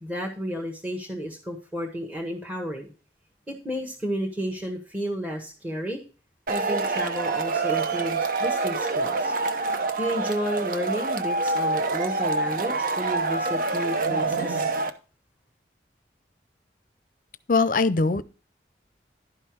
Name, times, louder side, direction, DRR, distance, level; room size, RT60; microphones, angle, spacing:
voice 1, 0.0-2.9 3.5-6.0 6.5-9.3 10.0-14.6, equal, 10° right, 0 dB, 1.2 m, -32 dB
Male speech man speaking / Shout / Clapping, 6.5-14.9, right 3 dB, 50° right, 0.8 m, -26 dB
voice 2, 17.5-18.2, left 3 dB, 50° left, 15 dB, 0.6 m, -21 dB
11.5 x 5.5 x 4.6 m, 0.35 s
head